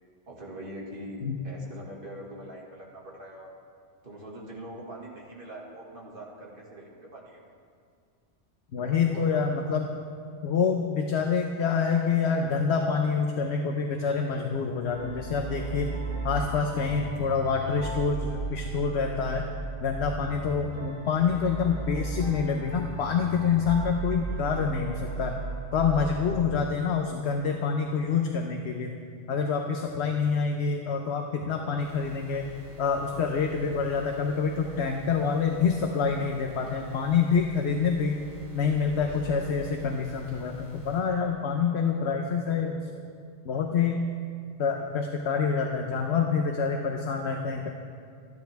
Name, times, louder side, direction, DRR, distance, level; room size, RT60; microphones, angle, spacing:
voice 1, 0.3-3.5 4.0-7.5 8.8-9.4 10.2-10.5 26.0-26.5, right 1 dB, 45° right, -2 dB, 2.3 m, -43 dB
voice 2, 8.7-9.9 10.4-15.9 16.2-19.5 19.8-25.4 25.7-29.0 29.3-32.5 32.8-38.2 38.5-42.9 43.4-44.0 44.6-47.7, left 5 dB, 60° left, 3 dB, 1.1 m, -27 dB
sound 1, 14.9-26.6, right 3 dB, 25° left, 1.6 m, -35 dB
sound 2, 31.8-41.0, right 1 dB, 65° right, 4.0 m, -48 dB
26.5 x 10.0 x 3.5 m, 2.2 s
omnidirectional pair, 1.3 m